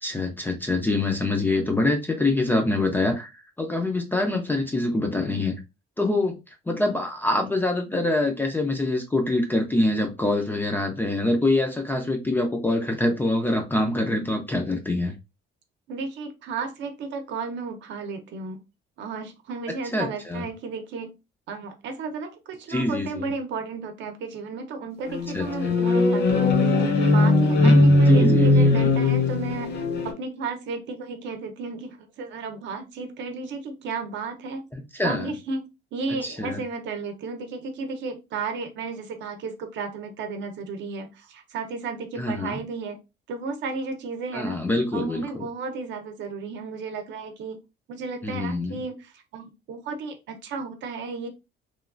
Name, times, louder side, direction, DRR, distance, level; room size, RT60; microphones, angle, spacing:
voice 1, 0.0-5.6 6.0-6.3 6.7-15.2 19.9-20.5 22.7-23.3 25.3-25.8 27.6-28.9 34.7-35.3 36.2-36.6 42.2-42.6 44.3-45.3 48.2-48.8, left 2 dB, 10° left, 3 dB, 0.3 m, -25 dB
voice 2, 15.9-18.6 19.0-21.1 21.5-29.7 30.0-34.7 35.0-43.0 43.3-44.6 44.9-47.6 47.9-51.3, right 4 dB, 60° right, 5 dB, 0.7 m, -33 dB
sound 1, 25.1-30.1, left 2 dB, 55° left, 0.6 m, -19 dB
3.1 x 2.3 x 2.4 m, 0.25 s
cardioid pair, 175°, 21 cm